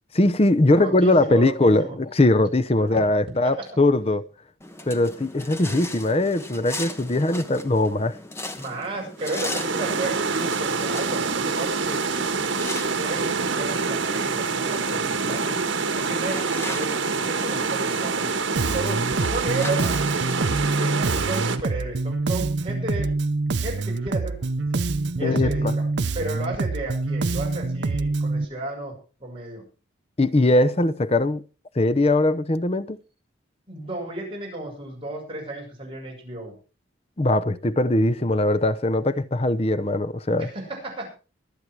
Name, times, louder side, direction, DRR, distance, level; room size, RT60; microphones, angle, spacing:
voice 1, 0.1-4.3 4.9-8.2 25.2-25.7 30.2-31.4 31.7-33.0 37.2-40.5, left 2 dB, 30° left, 0.6 m, -21 dB
voice 2, 0.7-2.0 2.8-3.0 3.4-3.6 8.6-12.0 13.0-15.6 16.0-18.3 18.7-19.9 20.8-23.1 23.6-24.8 25.2-25.8 26.1-28.9 29.2-29.6 33.7-36.5 40.4-41.1, right 2 dB, 30° right, 7.0 m, -33 dB
sound 1, 4.6-21.2, left 2 dB, 15° left, 1.1 m, -39 dB
sound 2, 9.2-21.6, right 4 dB, 80° right, 1.6 m, -26 dB
Bass guitar, 18.6-28.4, right 3 dB, 60° right, 0.6 m, -26 dB
23.5 x 8.3 x 4.7 m
head